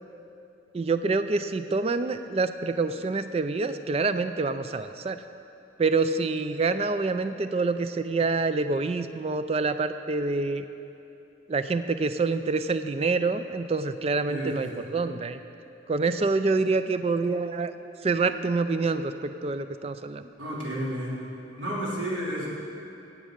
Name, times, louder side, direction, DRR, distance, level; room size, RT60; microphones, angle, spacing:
voice 1, 0.7-5.2 5.8-10.7 11.5-15.4 15.9-17.7 18.0-20.3, right 3 dB, 30° right, 10 dB, 0.3 m, -26 dB
voice 2, 14.3-14.8 20.4-21.2 21.5-22.5, equal, 80° right, -6 dB, 3.2 m, -32 dB
17.0 x 7.4 x 5.2 m, 2.9 s
head